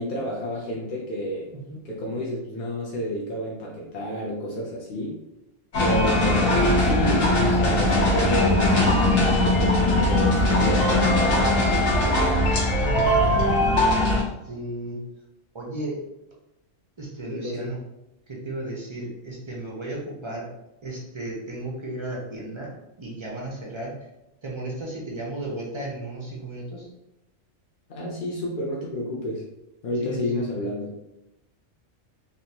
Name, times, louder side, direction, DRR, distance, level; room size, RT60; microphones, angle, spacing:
voice 1, 0.0-1.5 1.8-5.2 5.8-8.8 9.4-11.6 17.3-17.7 27.9-29.4 29.8-30.9, equal, 55° left, -3 dB, 0.6 m, -30 dB
sound 1, 5.7-14.2, left 1 dB, 85° left, 1.4 m, -20 dB
voice 2, 12.8-13.7 14.4-15.0 15.5-16.0 17.0-17.8 18.3-20.5 20.8-22.7 23.0-23.9 24.4-26.9 30.0-30.5, right 2 dB, 50° right, -3 dB, 0.3 m, -34 dB
3.4 x 2.5 x 2.8 m, 0.92 s
omnidirectional pair, 1.3 m